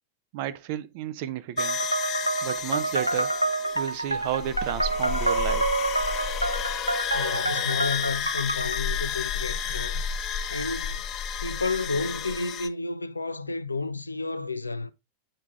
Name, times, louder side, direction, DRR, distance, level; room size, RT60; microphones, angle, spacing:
voice 1, 0.3-1.8 2.4-3.3 3.7-5.9, right 11 dB, 50° right, 0.7 m, -32 dB
sound 1, 1.6-12.7, left 7 dB, 35° left, 0.8 m, -31 dB
sound 2, 1.6-8.8, right 2 dB, 85° right, 0.3 m, -28 dB
voice 2, 7.1-10.1 10.5-11.1 11.4-14.9, left 3 dB, 80° left, 0.4 m, -31 dB
8.8 x 4.7 x 2.4 m
figure-of-eight pair, 90°, 0 cm